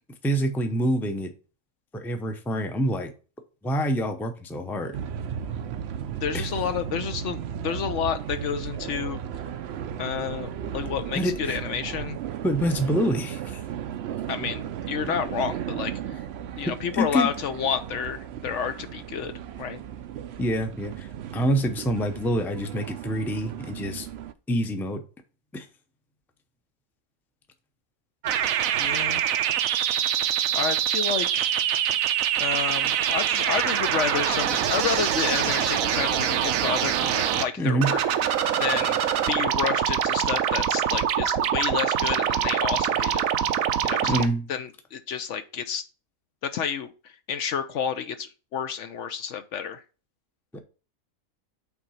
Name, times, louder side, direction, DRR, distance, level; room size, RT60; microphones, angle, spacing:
voice 1, 0.2-1.3 1.9-3.1 3.6-4.9 6.3-6.5 11.1-11.6 12.4-13.6 16.9-17.3 20.4-24.1 24.5-25.0 25.5-25.7 37.6-37.9 44.1-44.5 50.5-50.6, equal, ahead, 6 dB, 0.5 m, -26 dB
sound 1, 4.9-24.3, right 9 dB, 65° right, 0.7 m, -35 dB
voice 2, 6.2-9.2 10.0-12.2 14.3-15.9 16.6-19.3 19.6-19.8 28.8-29.2 30.5-31.5 32.4-38.0 38.6-43.2 43.8-44.2 44.5-45.8 46.4-49.8, left 7 dB, 65° left, 10 dB, 0.9 m, -30 dB
sound 2, 28.2-37.4 37.8-44.3, right 10 dB, 80° right, 1.0 m, -24 dB
5.9 x 3.9 x 5.6 m, 0.34 s
omnidirectional pair, 1.5 m